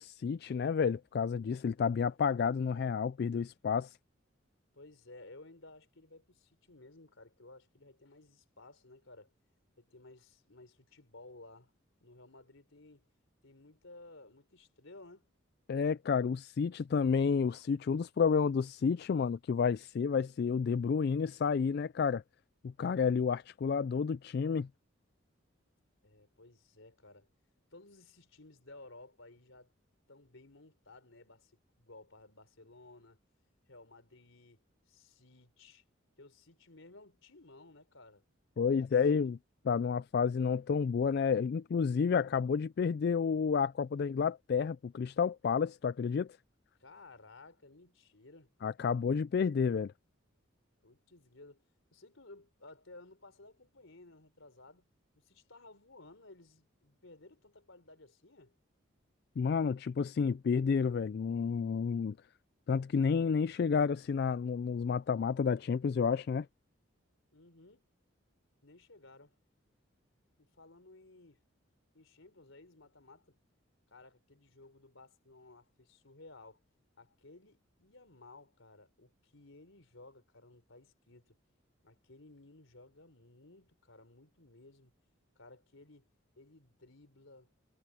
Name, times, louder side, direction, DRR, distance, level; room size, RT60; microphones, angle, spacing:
voice 1, 0.0-4.0 15.7-22.2 22.6-24.7 38.6-39.4 39.7-46.3 48.6-49.9 59.4-62.2 62.7-66.5, left 6 dB, 50° left, 0.3 m, -30 dB
voice 2, 4.7-9.3 9.8-11.7 12.0-13.1 13.4-15.3 19.7-19.8 26.0-27.3 27.7-29.7 30.1-33.2 33.7-35.8 36.2-38.2 38.6-39.3 46.8-48.5 50.8-54.9 55.2-58.5 67.3-67.9 68.6-69.4 70.4-71.4 71.9-73.4 73.9-76.6 77.0-81.4 81.8-84.9 85.4-86.1 86.4-87.5, left 2 dB, 75° left, 3.8 m, -56 dB
head